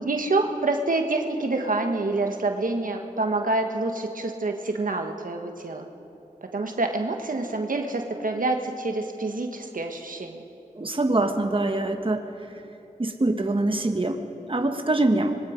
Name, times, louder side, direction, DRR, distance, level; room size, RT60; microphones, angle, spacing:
voice 1, 0.0-5.8 6.5-10.4, right 2 dB, 80° right, 4 dB, 1.4 m, -27 dB
voice 2, 10.8-12.2 13.0-15.4, right 2 dB, 40° right, 5 dB, 1.4 m, -24 dB
25.0 x 21.5 x 5.2 m, 2.7 s
wide cardioid pair, 55°, 14 cm